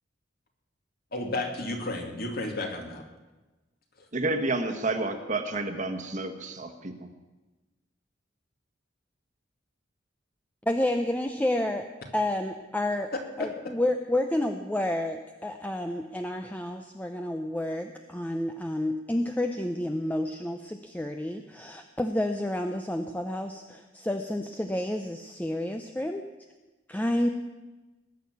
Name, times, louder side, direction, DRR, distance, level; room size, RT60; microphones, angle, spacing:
voice 1, 1.1-3.0 4.0-4.1 13.4-13.5, left 2 dB, 55° left, 2 dB, 2.5 m, -32 dB
voice 2, 4.1-7.1, right 2 dB, 40° right, 6 dB, 1.4 m, -30 dB
voice 3, 10.6-11.9 12.1-13.1 13.4-26.2 26.9-27.3, left 1 dB, 10° left, 5 dB, 0.7 m, -30 dB
19.5 x 6.6 x 9.5 m, 1.1 s
head